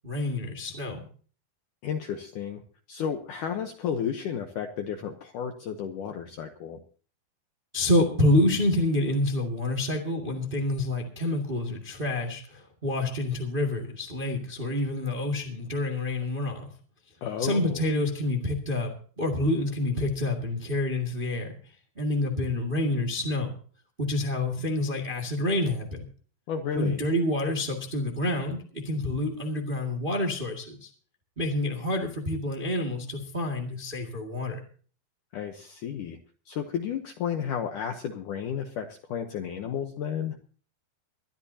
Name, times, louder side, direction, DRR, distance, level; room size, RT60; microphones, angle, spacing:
voice 1, 0.0-1.0 7.7-16.6 17.4-18.9 19.2-21.5 21.9-23.5 24.0-26.0 26.7-30.9 31.4-34.6, left 1 dB, 30° right, 3 dB, 0.9 m, -27 dB
voice 2, 1.8-2.6 2.9-6.8 17.2-17.8 26.5-27.0 35.3-36.2 36.5-40.4, left 8 dB, 75° left, 5 dB, 1.9 m, -32 dB
22.5 x 13.0 x 2.8 m, 0.42 s
omnidirectional pair, 4.9 m